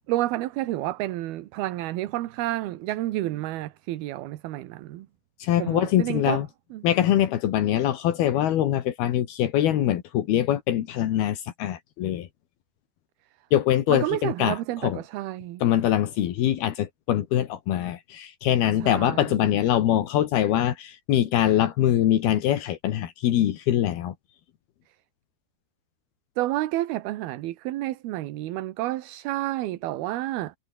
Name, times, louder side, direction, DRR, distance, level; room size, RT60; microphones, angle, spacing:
voice 1, 0.1-5.1 5.6-6.4 6.7-6.8 13.9-15.6 18.8-19.5 26.4-30.6, right 16 dB, 80° right, 3.0 m, -30 dB
voice 2, 5.4-6.5 6.8-12.3 13.5-15.0 15.6-24.2, left 11 dB, 80° left, 3.6 m, -23 dB
omnidirectional pair, 4.5 m